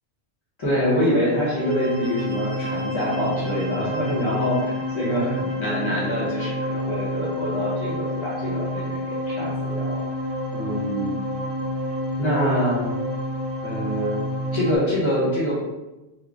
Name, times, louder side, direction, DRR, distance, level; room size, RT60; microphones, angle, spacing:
voice 1, 0.6-10.0 10.5-11.2 12.2-12.9 13.6-14.2 14.5-15.5, equal, 30° left, -5 dB, 1.1 m, -25 dB
sound 1, 1.2-14.8, equal, 20° right, 0.8 m, -29 dB
3.7 x 2.2 x 3.7 m, 1.0 s
omnidirectional pair, 1.1 m